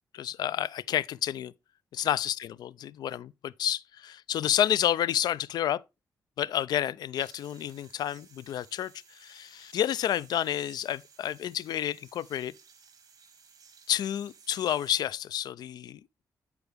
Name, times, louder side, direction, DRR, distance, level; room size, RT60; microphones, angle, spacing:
voice 1, 0.1-1.5 1.9-5.8 6.4-8.9 9.2-12.5 13.9-16.0, left 11 dB, 80° left, 0.4 m, -30 dB
sound 1, 7.2-14.9, right 6 dB, 60° right, 1.4 m, -56 dB
9.7 x 4.6 x 3.4 m
cardioid pair, 100°, 7 cm